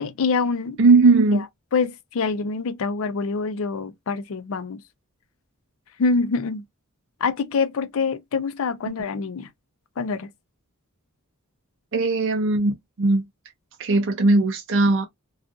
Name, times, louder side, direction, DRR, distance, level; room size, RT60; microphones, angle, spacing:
voice 1, 0.0-0.8 1.3-1.4 1.7-4.8 6.0-6.6 7.2-9.5 10.0-10.3, left 4 dB, 65° left, 0.5 m, -25 dB
voice 2, 0.8-1.4 11.9-13.2 13.8-15.0, right 3 dB, 60° right, 0.5 m, -18 dB
2.4 x 2.4 x 2.4 m
head